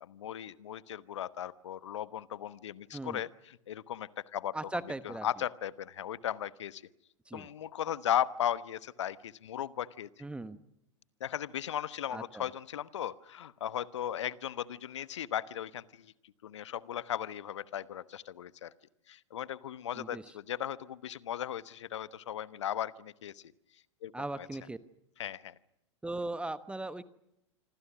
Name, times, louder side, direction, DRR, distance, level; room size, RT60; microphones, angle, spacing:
voice 1, 0.0-4.7 5.0-6.8 7.3-10.2 11.2-16.1 16.4-18.7 19.1-23.4 24.0-24.5 25.2-25.5, left 10 dB, 65° left, 16 dB, 1.1 m, -37 dB
voice 2, 4.5-5.3 7.3-7.5 10.2-10.6 12.1-12.4 19.9-20.2 24.1-24.8 26.0-27.0, right 2 dB, 5° right, 14 dB, 1.1 m, -38 dB
27.0 x 26.0 x 6.1 m, 0.83 s
figure-of-eight pair, 95°, 16 cm